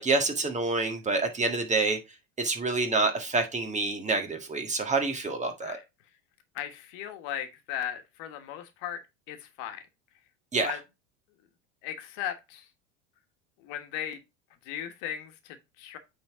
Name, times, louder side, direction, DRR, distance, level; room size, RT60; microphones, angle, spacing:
voice 1, 0.0-2.0 2.4-5.8 10.5-10.7, right 3 dB, 20° right, 1.7 m, -27 dB
voice 2, 6.5-9.0 9.3-9.8 10.6-10.8 11.8-12.7 13.6-14.2 14.6-16.0, left 10 dB, 60° left, 1.5 m, -37 dB
8.5 x 4.0 x 3.6 m
hypercardioid pair, 95°, 37 cm